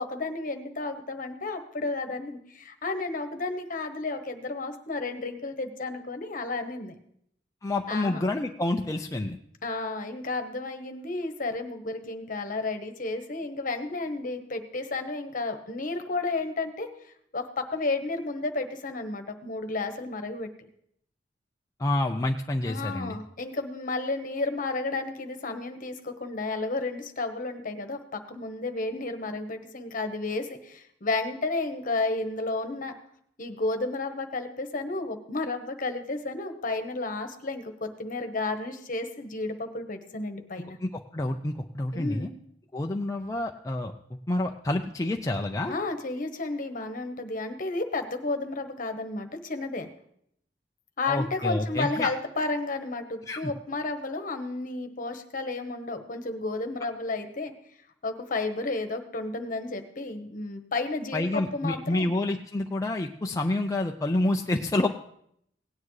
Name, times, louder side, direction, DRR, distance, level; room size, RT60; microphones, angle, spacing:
voice 1, 0.0-6.9 7.9-8.2 9.6-16.9 17.3-20.5 22.6-32.9 33.4-40.8 41.9-42.3 45.7-49.9 51.0-57.5 58.0-62.1, left 3 dB, 50° left, 7 dB, 1.1 m, -32 dB
voice 2, 7.6-9.4 21.8-23.1 40.8-42.3 42.7-43.9 44.3-45.7 51.1-52.2 53.3-53.4 61.1-64.9, left 2 dB, 20° left, 3 dB, 0.4 m, -28 dB
17.5 x 9.6 x 3.2 m, 0.70 s
head